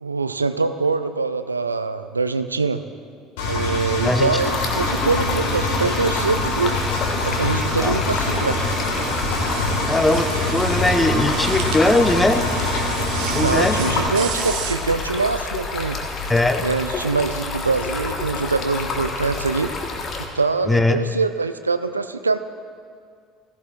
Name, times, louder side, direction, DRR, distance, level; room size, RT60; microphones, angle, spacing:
voice 1, 0.0-2.8 3.4-6.7 7.3-8.6 13.4-16.0 16.6-19.7 20.3-22.4, right 4 dB, 85° right, 11 dB, 0.3 m, -23 dB
Engine, 3.4-14.1, left 2 dB, 70° left, 1.8 m, -24 dB
Stream, 4.4-20.3, left 3 dB, 45° left, 1.3 m, -29 dB
sound 1, 8.1-14.7, right 7 dB, 60° right, 0.8 m, -32 dB
voice 2, 9.9-12.4 13.3-13.8 16.3-16.6 20.7-21.0, left 2 dB, 10° left, 9 dB, 0.7 m, -19 dB
15.0 x 14.0 x 2.5 m, 2.2 s
figure-of-eight pair, 60°, 0 cm